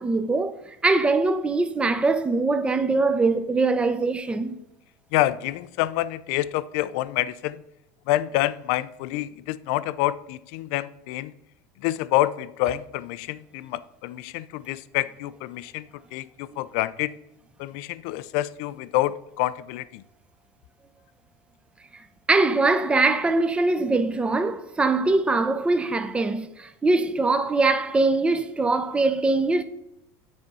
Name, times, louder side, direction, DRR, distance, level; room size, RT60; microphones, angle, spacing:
voice 1, 0.0-4.6 22.3-29.6, right 3 dB, 15° right, 0.7 m, -22 dB
voice 2, 5.1-7.6 8.1-11.3 11.8-17.1 17.6-20.0, left 15 dB, 65° left, 0.4 m, -27 dB
9.4 x 4.3 x 5.4 m
supercardioid pair, 120°, 8 cm